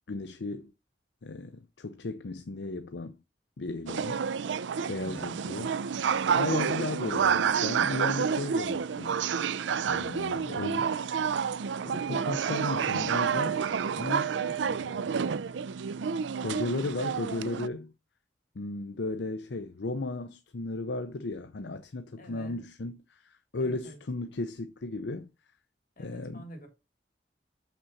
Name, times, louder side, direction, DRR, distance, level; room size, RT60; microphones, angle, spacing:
voice 1, 0.1-0.7 1.2-3.2 3.6-4.2 4.9-5.7 6.3-9.1 9.9-11.0 11.9-13.7 14.0-14.3 14.7-15.1 16.4-17.9 18.5-25.3 26.0-26.5, left 2 dB, 70° left, 0.6 m, -35 dB
sound 1, 3.9-17.7, right 7 dB, 85° right, 0.4 m, -29 dB
voice 2, 5.0-5.5 14.3-14.7 22.2-22.6 23.6-24.0 26.0-26.7, equal, 50° left, 3.4 m, -47 dB
7.1 x 5.9 x 4.1 m
head